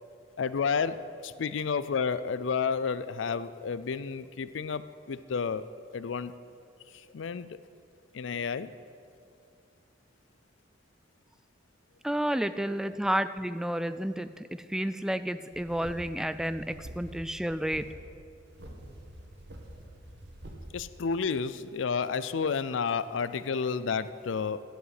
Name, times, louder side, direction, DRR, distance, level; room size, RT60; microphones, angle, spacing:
voice 1, 0.4-5.7 5.9-6.3 6.9-7.6 8.1-8.7 20.7-24.6, left 5 dB, 75° left, 15 dB, 0.4 m, -31 dB
voice 2, 12.0-18.0, right 1 dB, 5° right, 13 dB, 0.3 m, -31 dB
sound 1, 15.5-17.2 17.5-17.9 18.5-20.7, right 1 dB, 60° right, 2.0 m, -46 dB
12.5 x 7.9 x 8.2 m, 2.4 s
head